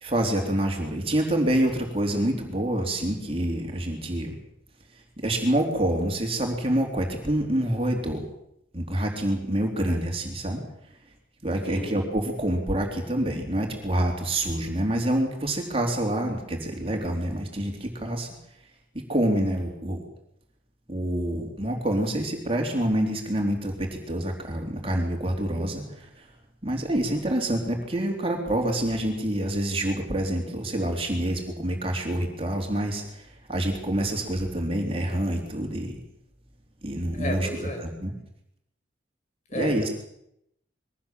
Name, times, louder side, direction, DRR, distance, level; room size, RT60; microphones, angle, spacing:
voice 1, 0.0-4.3 5.2-8.2 8.7-10.6 11.4-18.3 19.1-20.0 20.9-26.2 26.6-33.2 33.5-36.0 36.8-37.5 37.8-38.1 39.5-39.9, right 1 dB, 30° right, 2 dB, 3.5 m, -27 dB
voice 2, 37.1-37.8 39.5-39.9, equal, 40° left, 3 dB, 4.9 m, -32 dB
22.5 x 17.5 x 7.6 m, 0.77 s
head